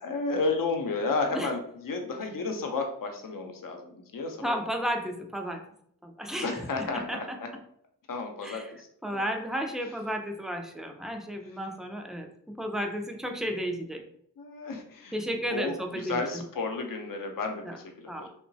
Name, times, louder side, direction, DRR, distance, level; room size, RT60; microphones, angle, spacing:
voice 1, 0.0-4.5 6.4-7.5 8.1-8.9 9.1-9.2 11.5-11.6 14.4-15.2 15.5-18.3, left 3 dB, 55° left, 4 dB, 0.7 m, -32 dB
voice 2, 4.4-5.6 6.0-7.4 8.4-8.7 9.0-14.0 15.1-16.4 17.6-17.8 18.1-18.3, equal, ahead, 3 dB, 0.4 m, -33 dB
2.9 x 2.1 x 2.6 m, 0.69 s
cardioid pair, 45°, 39 cm